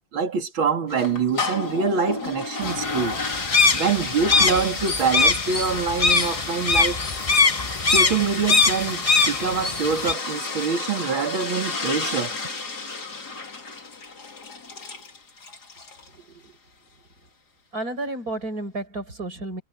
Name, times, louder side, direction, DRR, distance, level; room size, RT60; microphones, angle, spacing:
voice 1, 0.0-3.2 3.7-7.0 7.8-12.3, right 5 dB, 90° right, 3.3 m, -25 dB
sound 1, 0.9-16.1, left 3 dB, 55° left, 3.4 m, -32 dB
sound 2, 2.6-10.1, left 4 dB, 35° left, 0.5 m, -22 dB
voice 2, 16.1-16.5 17.7-19.6, right 2 dB, 45° right, 6.1 m, -32 dB
omnidirectional pair, 2.1 m